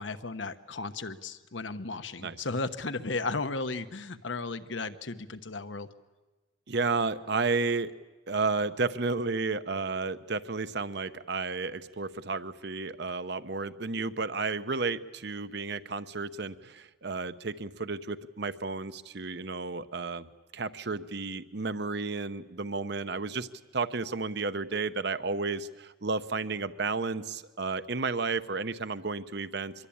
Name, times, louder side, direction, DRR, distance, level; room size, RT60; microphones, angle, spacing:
voice 1, 0.0-5.9, left 3 dB, 70° left, 10 dB, 1.1 m, -35 dB
voice 2, 6.7-7.9 8.3-20.3 20.5-23.5 23.7-29.9, right 4 dB, 55° right, 12 dB, 0.9 m, -32 dB
25.5 x 22.5 x 8.7 m, 1.2 s
head